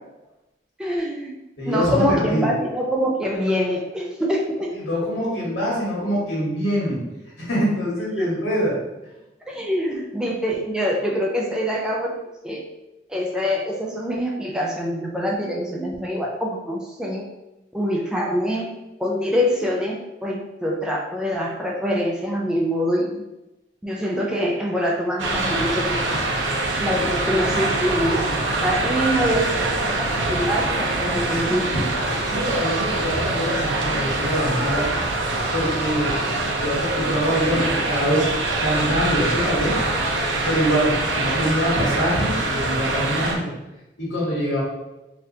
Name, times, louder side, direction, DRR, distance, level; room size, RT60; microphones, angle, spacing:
voice 1, 0.8-1.4 1.6-4.7 8.2-8.3 9.5-12.1 12.4-12.7 13.1-17.3 17.7-18.7 19.0-23.2 23.8-26.2 26.8-28.3 28.6-31.7, equal, 5° right, -2 dB, 0.4 m, -24 dB
voice 2, 1.6-2.5 4.8-7.0 7.4-8.8 31.7-31.8 32.3-34.9 35.5-38.2 38.6-39.9 40.5-43.5 44.0-44.6, equal, 90° left, -5 dB, 1.5 m, -24 dB
sound 1, 25.2-43.4, right 2 dB, 80° right, 0.6 m, -24 dB
4.0 x 2.4 x 2.7 m, 0.98 s
head